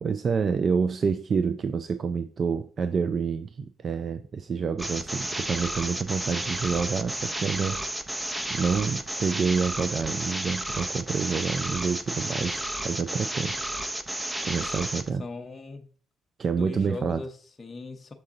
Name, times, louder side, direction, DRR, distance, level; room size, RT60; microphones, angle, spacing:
voice 1, 0.0-7.8 8.5-13.6 14.4-15.2 16.4-17.2, right 5 dB, 45° right, 0.4 m, -28 dB
sound 1, 4.8-15.1, right 1 dB, 10° right, 0.7 m, -32 dB
voice 2, 15.2-15.9 16.5-18.1, left 3 dB, 30° left, 0.7 m, -39 dB
6.8 x 3.9 x 3.7 m
cardioid pair, 90°, 0 cm